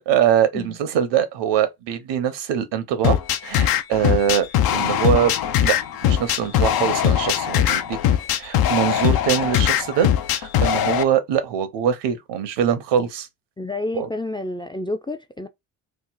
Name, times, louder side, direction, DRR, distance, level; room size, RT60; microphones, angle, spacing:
voice 1, 0.0-4.5 4.7-5.3 5.6-5.8 6.0-8.0 8.3-13.3 13.9-14.1, right 9 dB, 65° right, 0.8 m, -23 dB
sound 1, 3.0-11.0, left 10 dB, 55° left, 0.6 m, -20 dB
voice 2, 13.6-15.5, left 2 dB, 10° left, 0.5 m, -29 dB
2.9 x 2.0 x 3.9 m
hypercardioid pair, 50°, 45 cm